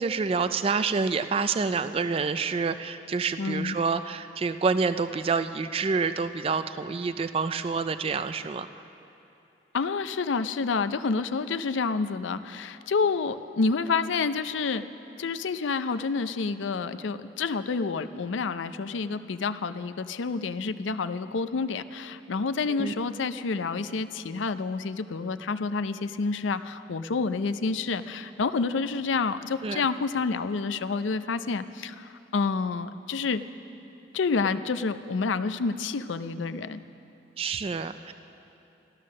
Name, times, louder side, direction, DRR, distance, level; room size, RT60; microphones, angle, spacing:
voice 1, 0.0-8.7 22.8-22.9 29.6-29.8 37.4-38.1, right 4 dB, 30° right, 11 dB, 0.3 m, -27 dB
voice 2, 3.4-3.8 9.7-14.8 15.2-33.4 34.1-36.8, left 4 dB, 85° left, 12 dB, 0.5 m, -29 dB
15.0 x 13.0 x 6.4 m, 2.8 s
head